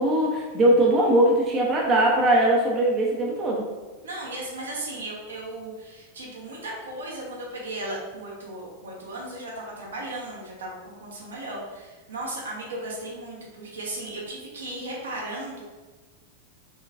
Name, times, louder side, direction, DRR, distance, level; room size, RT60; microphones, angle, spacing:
voice 1, 0.0-3.6, right 1 dB, 25° right, -2 dB, 0.6 m, -20 dB
voice 2, 4.0-15.6, right 1 dB, 70° right, -4 dB, 1.0 m, -36 dB
4.2 x 3.1 x 2.4 m, 1.3 s
figure-of-eight pair, 90°, 0 cm